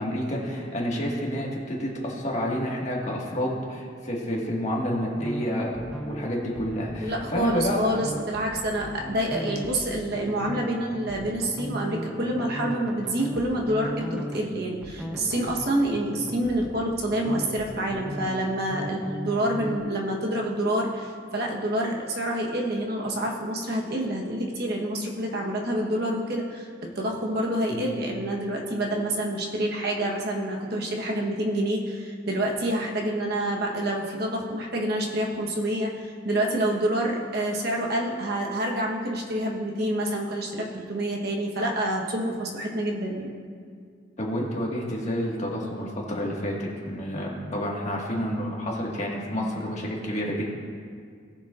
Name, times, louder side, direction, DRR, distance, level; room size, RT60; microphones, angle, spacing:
voice 1, 0.0-5.8 6.0-7.8 27.7-27.8 44.2-50.4, equal, 35° left, -3 dB, 1.7 m, -29 dB
sound 1, 5.2-19.8, equal, 5° right, 0.7 m, -37 dB
voice 2, 7.0-43.3, right 1 dB, 55° right, -1 dB, 1.2 m, -27 dB
19.0 x 7.0 x 2.5 m, 2.1 s
head